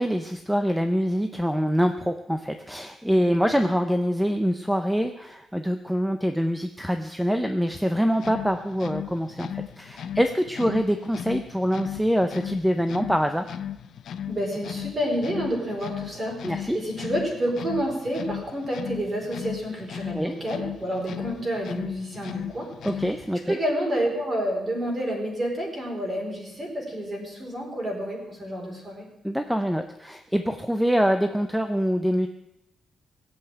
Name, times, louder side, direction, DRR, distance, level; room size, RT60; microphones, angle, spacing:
voice 1, 0.0-13.5 16.4-16.8 20.1-20.3 22.8-23.6 29.2-32.3, equal, ahead, 7 dB, 0.6 m, -25 dB
sound 1, 8.1-23.4, left 9 dB, 60° left, 0.8 m, -37 dB
voice 2, 14.3-22.7 23.5-29.1, equal, 25° right, 0 dB, 4.6 m, -29 dB
18.5 x 7.9 x 9.0 m, 0.90 s
wide cardioid pair, 170°, 0 cm